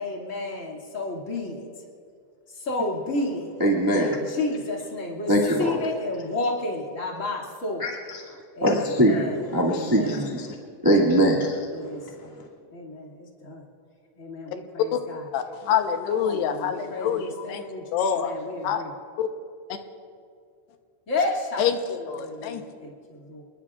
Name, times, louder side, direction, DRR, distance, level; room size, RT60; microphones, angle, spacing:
voice 1, 0.0-1.7 2.5-3.5 4.0-5.3 5.6-7.9 8.6-10.3 11.7-12.3 12.7-13.6 14.2-15.2 16.1-18.9 21.1-21.6 22.2-23.4, left 2 dB, 25° left, -2 dB, 1.9 m, -31 dB
voice 2, 3.6-4.2 5.3-5.8 7.8-8.2 8.6-10.5 10.8-11.6, equal, 15° right, -4 dB, 0.7 m, -22 dB
voice 3, 15.3-17.6 17.9-18.4 18.6-18.8 19.2-19.3 21.6-22.6, left 8 dB, 85° left, 6 dB, 3.0 m, -26 dB
28.5 x 20.5 x 2.5 m, 2.3 s
omnidirectional pair, 4.7 m